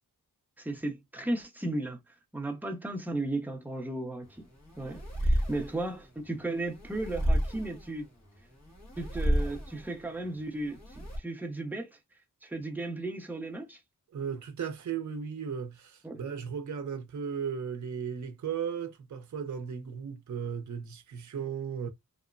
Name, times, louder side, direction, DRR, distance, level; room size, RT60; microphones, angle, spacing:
voice 1, 0.6-4.4 4.8-8.1 9.0-12.0 12.4-13.8 16.0-16.2, right 2 dB, 5° right, 0.6 m, -35 dB
sound 1, 4.2-11.2, equal, 40° left, 1.4 m, -32 dB
voice 2, 14.1-21.9, right 7 dB, 50° right, 0.6 m, -36 dB
2.9 x 2.1 x 2.3 m
wide cardioid pair, 75°, 39 cm